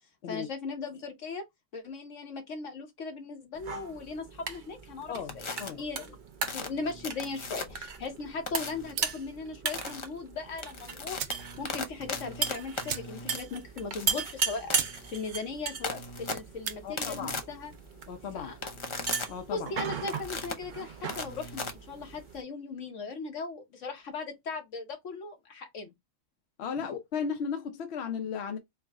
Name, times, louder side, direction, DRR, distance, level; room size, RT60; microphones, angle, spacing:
voice 1, 0.3-1.5 1.7-6.2 6.5-17.7 18.3-18.7 19.5-25.9 26.8-26.9, left 4 dB, 80° left, 1.4 m, -38 dB
sound 1, 3.6-22.4, right 6 dB, 50° right, 0.7 m, -37 dB
sound 2, 5.3-5.7 6.4-7.9 8.5-8.9 9.7-10.0 10.5-22.4, left 3 dB, 35° left, 0.5 m, -39 dB
sound 3, 8.9-9.3 10.7-10.8 11.1-11.5 11.9-12.0 12.2-12.3 12.8-13.4 13.8-13.9 14.4-14.5 14.7-15.0 15.3-15.7 16.5-16.8, right 9 dB, 90° right, 1.0 m, -38 dB
voice 2, 16.8-17.4 18.1-18.5 19.3-19.7 26.6-28.6, left 6 dB, 65° left, 0.9 m, -35 dB
4.5 x 2.1 x 3.4 m
omnidirectional pair, 1.3 m